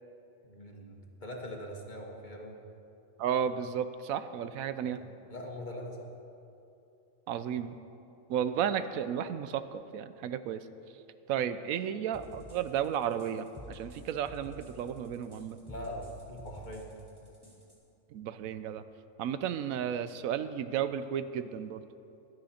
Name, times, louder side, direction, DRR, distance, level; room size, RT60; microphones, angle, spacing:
voice 1, 0.4-2.6 4.8-5.0 5.3-6.1 15.7-16.9, equal, 35° left, 0 dB, 1.6 m, -42 dB
voice 2, 3.2-5.0 7.3-7.8 8.3-10.7 11.3-15.6 18.1-18.8 19.2-21.8, right 9 dB, 90° right, 12 dB, 1.1 m, -33 dB
sound 1, 12.1-17.8, equal, 15° right, 2.7 m, -50 dB
17.0 x 12.0 x 4.3 m, 2.8 s
omnidirectional pair, 1.4 m